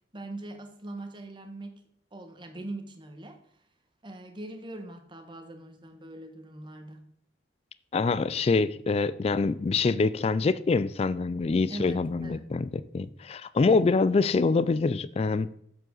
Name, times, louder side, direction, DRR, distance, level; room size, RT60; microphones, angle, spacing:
voice 1, 0.1-1.8 2.1-3.4 4.0-7.1 11.7-12.5 13.7-13.9, right 2 dB, 25° right, 1.2 m, -41 dB
voice 2, 7.9-15.5, left 4 dB, 35° left, 0.3 m, -25 dB
7.8 x 7.6 x 3.9 m
head